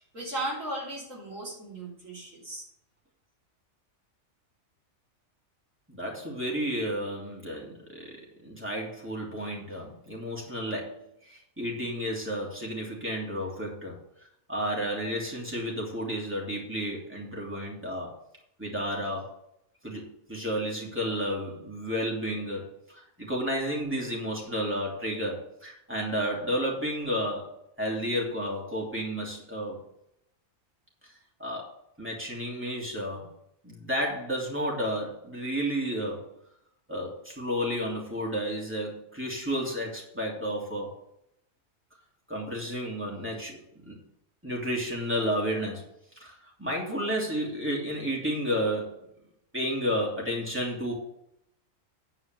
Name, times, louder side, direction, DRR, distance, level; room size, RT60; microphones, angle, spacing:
voice 1, 0.0-2.6, right 1 dB, 75° right, -5 dB, 3.7 m, -36 dB
voice 2, 5.9-14.0 14.5-18.1 18.6-19.3 19.8-29.8 31.4-33.3 33.6-36.3 36.9-40.9 42.3-44.0 44.4-45.8 46.2-49.1 49.5-50.9, equal, 10° right, -3 dB, 2.9 m, -32 dB
10.0 x 4.9 x 7.7 m, 0.78 s
omnidirectional pair, 1.4 m